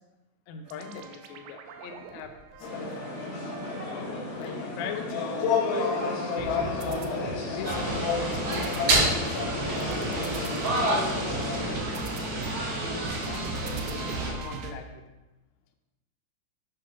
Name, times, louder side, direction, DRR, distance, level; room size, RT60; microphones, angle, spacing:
voice 1, 0.5-3.3 4.3-6.7 7.5-12.1 12.7-13.5 14.0-15.0, left 6 dB, 85° left, 4 dB, 3.0 m, -42 dB
sound 1, 0.7-4.8 5.2-14.7, right 4 dB, 80° right, 2.7 m, -40 dB
sound 2, 2.6-11.8, left 4 dB, 65° left, 2.1 m, -31 dB
sound 3, 7.6-14.3, right 1 dB, 65° right, 1.5 m, -29 dB
8.4 x 3.7 x 5.6 m, 1.1 s
omnidirectional pair, 5.0 m